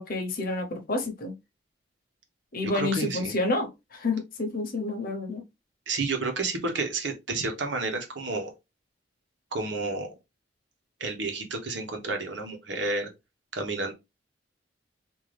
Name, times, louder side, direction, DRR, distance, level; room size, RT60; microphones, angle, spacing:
voice 1, 0.0-1.3 2.5-5.4, left 2 dB, 55° left, 0.9 m, -29 dB
voice 2, 2.6-3.4 5.9-8.5 9.5-10.1 11.0-13.1 13.5-13.9, right 3 dB, 75° right, 1.1 m, -30 dB
3.8 x 2.7 x 3.3 m
head